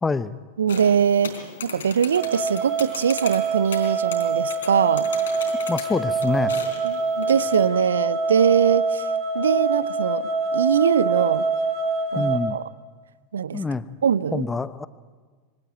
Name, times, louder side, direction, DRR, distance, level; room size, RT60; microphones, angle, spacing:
voice 1, 0.0-0.3 5.7-6.6 12.1-12.6 13.5-13.9 14.3-14.9, left 4 dB, 15° left, 16 dB, 0.9 m, -26 dB
voice 2, 0.6-5.1 6.8-9.0 9.3-11.4 12.1-12.6 13.3-13.6 14.0-14.4, right 7 dB, 65° right, 18 dB, 0.7 m, -22 dB
sound 1, 0.7-7.7, left 5 dB, 65° left, 4.0 m, -38 dB
sound 2, 2.2-12.4, right 4 dB, 40° right, 7.0 m, -25 dB
24.5 x 17.5 x 9.1 m, 1.4 s
figure-of-eight pair, 90°, 0 cm